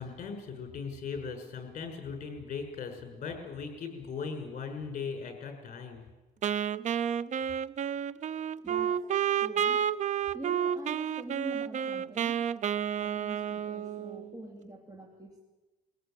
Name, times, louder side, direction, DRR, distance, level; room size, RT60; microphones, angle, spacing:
voice 1, 0.0-6.1, left 5 dB, 50° left, 5 dB, 6.1 m, -39 dB
Wind instrument woodwind instrument, 6.4-14.3, right 9 dB, 45° right, 0.6 m, -31 dB
voice 2, 8.6-9.0 9.3-9.9 10.3-12.4 12.7-15.4, right 1 dB, 20° right, 2 dB, 2.9 m, -45 dB
23.0 x 17.0 x 9.1 m, 1.2 s
cardioid pair, 110°, 17 cm